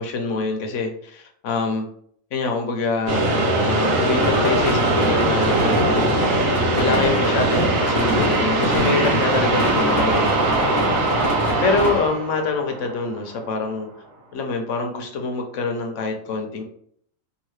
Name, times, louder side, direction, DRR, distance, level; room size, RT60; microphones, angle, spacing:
voice 1, 0.0-1.8 2.3-3.3 3.6-6.2 6.8-13.9 14.3-16.6, left 4 dB, 70° left, 3 dB, 1.0 m, -25 dB
sound 1, 3.1-13.3, right 2 dB, 85° right, 1.1 m, -21 dB
sound 2, 4.2-12.0, equal, ahead, 1.0 m, -27 dB
2.8 x 2.7 x 3.1 m, 0.63 s
omnidirectional pair, 1.4 m